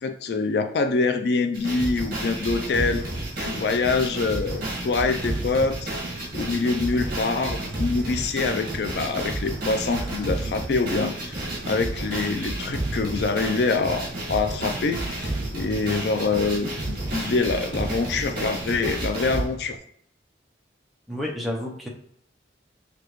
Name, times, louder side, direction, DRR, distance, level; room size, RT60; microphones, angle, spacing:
voice 1, 0.0-3.0 3.4-5.9 6.3-19.8, left 4 dB, 65° left, 8 dB, 0.4 m, -25 dB
sound 1, 1.5-19.5, right 1 dB, 50° right, 1.7 m, -31 dB
sound 2, 2.7-19.8, right 3 dB, 75° right, 0.4 m, -41 dB
voice 2, 21.1-21.9, left 1 dB, ahead, -2 dB, 0.6 m, -30 dB
6.6 x 2.3 x 3.1 m, 0.68 s
head